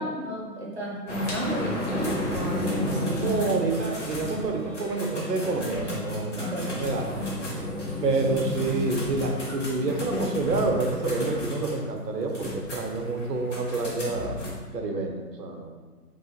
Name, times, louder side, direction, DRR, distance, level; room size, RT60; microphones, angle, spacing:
voice 1, 0.0-3.4 6.4-6.7, equal, 40° right, -4 dB, 0.8 m, -32 dB
sound 1, 1.1-14.5, left 1 dB, 50° left, 1.0 m, -32 dB
voice 2, 3.2-7.2 8.0-14.3 14.7-15.7, right 3 dB, 80° right, 2 dB, 0.7 m, -28 dB
3.9 x 2.4 x 2.4 m, 1.4 s
figure-of-eight pair, 155°, 48 cm